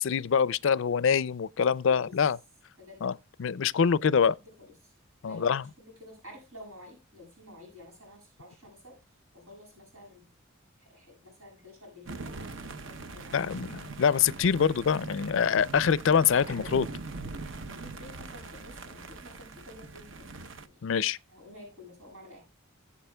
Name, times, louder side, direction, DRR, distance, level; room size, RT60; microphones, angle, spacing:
voice 1, 0.0-2.4 3.0-3.1 3.4-4.3 5.2-5.6 13.3-16.8 20.8-21.2, left 7 dB, 65° left, 0.4 m, -25 dB
voice 2, 1.9-2.2 2.8-3.1 4.1-5.0 5.2-10.3 10.8-14.1 16.3-16.9 17.6-20.3 20.6-20.9 21.3-22.4, left 1 dB, 85° right, 7.1 m, -50 dB
sound 1, 12.0-20.7, right 3 dB, 60° right, 0.8 m, -42 dB
20.0 x 7.2 x 2.2 m
head